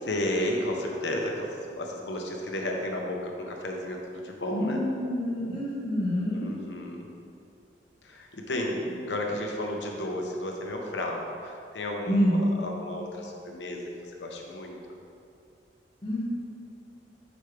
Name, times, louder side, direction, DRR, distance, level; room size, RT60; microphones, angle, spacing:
voice 1, 0.0-4.8 6.3-7.0 8.0-14.8, left 1 dB, 85° left, 1 dB, 1.0 m, -33 dB
voice 2, 4.5-6.5 12.1-12.3 16.0-16.2, equal, 30° left, -8 dB, 1.5 m, -27 dB
8.0 x 6.3 x 3.4 m, 2.5 s
head